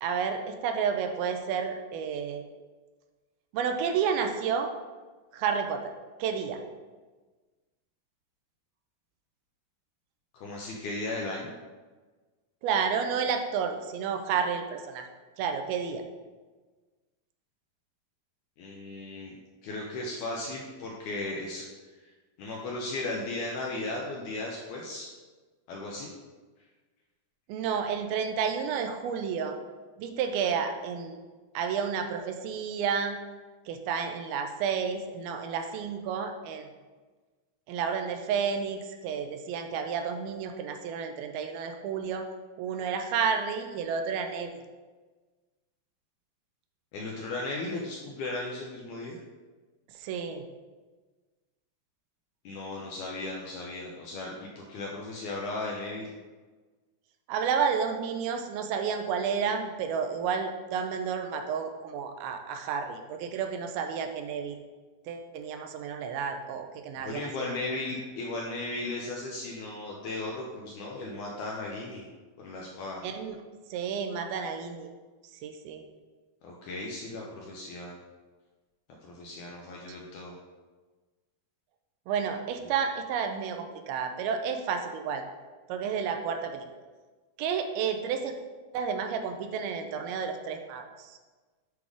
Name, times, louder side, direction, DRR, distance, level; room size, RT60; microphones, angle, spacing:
voice 1, 0.0-2.4 3.5-4.7 5.3-5.9 6.2-6.6 12.6-15.1 15.4-16.0 27.5-29.6 30.0-31.1 31.5-33.2 33.7-36.7 37.7-42.3 42.6-44.5 50.0-50.4 57.3-64.6 65.1-67.5 73.0-73.4 73.7-74.9 75.4-75.8 82.1-85.2 85.7-86.6 87.4-88.4 88.7-91.1, right 6 dB, 85° right, 5 dB, 2.5 m, -31 dB
voice 2, 10.3-11.5 18.6-19.3 19.6-21.7 22.0-22.1 22.4-25.1 25.7-26.1 46.9-49.2 52.4-56.1 67.0-72.0 72.4-73.0 76.4-77.9 79.0-80.3 82.6-82.7, left 2 dB, 75° left, -2 dB, 1.8 m, -36 dB
8.2 x 3.6 x 4.8 m, 1.3 s
omnidirectional pair, 4.3 m